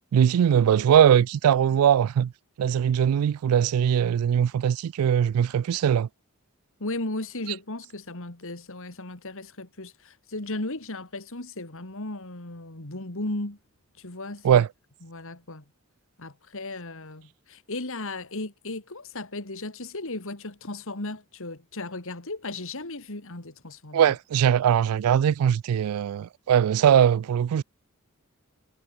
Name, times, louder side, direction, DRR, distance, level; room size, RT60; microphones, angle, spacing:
voice 1, 0.1-2.3 2.6-6.1 14.4-14.7 23.9-27.6, right 9 dB, 75° right, 0.3 m, -21 dB
voice 2, 6.8-13.6 14.0-14.6 15.0-15.6 16.2-24.2, left 2 dB, 65° left, 2.7 m, -36 dB
head